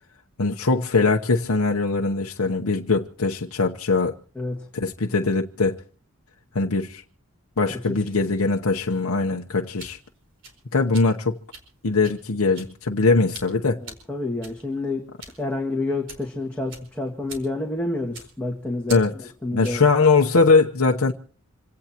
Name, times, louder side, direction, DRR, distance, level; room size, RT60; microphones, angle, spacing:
voice 1, 0.4-4.1 4.7-5.8 6.5-7.0 7.6-10.0 10.7-11.4 11.8-13.8 18.9-19.1 19.5-21.1, left 3 dB, 80° left, 1.0 m, -21 dB
sound 1, 9.5-19.9, right 3 dB, 55° right, 4.7 m, -45 dB
voice 2, 13.8-15.0 15.4-19.8, left 2 dB, 5° left, 2.0 m, -29 dB
27.0 x 17.5 x 3.0 m
head